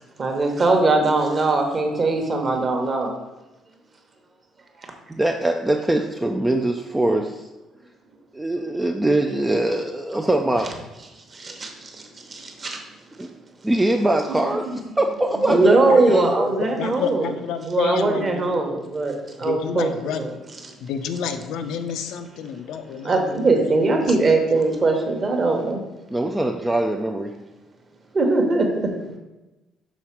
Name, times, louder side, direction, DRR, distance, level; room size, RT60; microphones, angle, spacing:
voice 1, 0.2-3.2 11.3-12.8 14.3-14.4 14.7-14.8 15.5-17.3 17.7-19.9 20.2-20.3 23.0-25.8 28.1-28.9, right 3 dB, 25° right, 3 dB, 0.9 m, -21 dB
voice 2, 5.1-7.5 8.3-10.7 13.2-13.3 13.6-16.5 26.1-27.3, right 1 dB, 10° right, 3 dB, 0.3 m, -22 dB
voice 3, 15.9-16.3 16.7-18.6 19.4-20.2 20.8-24.6, left 7 dB, 80° left, 8 dB, 0.6 m, -29 dB
6.2 x 3.9 x 5.8 m, 1.0 s
cardioid pair, 180°, 0 cm